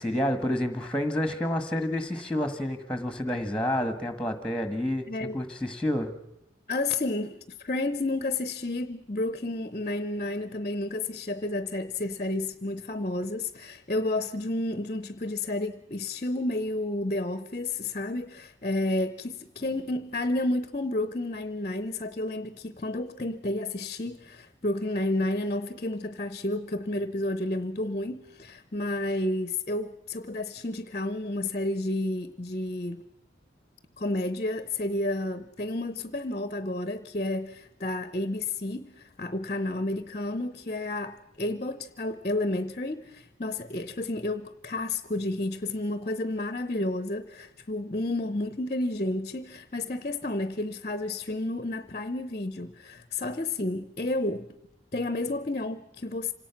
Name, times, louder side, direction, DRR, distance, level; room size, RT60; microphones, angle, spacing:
voice 1, 0.0-5.1 5.3-6.1, left 1 dB, 5° left, 1.5 m, -29 dB
voice 2, 6.7-33.0 34.0-54.5 54.9-56.3, left 2 dB, 35° left, 0.8 m, -31 dB
26.5 x 18.0 x 5.9 m
head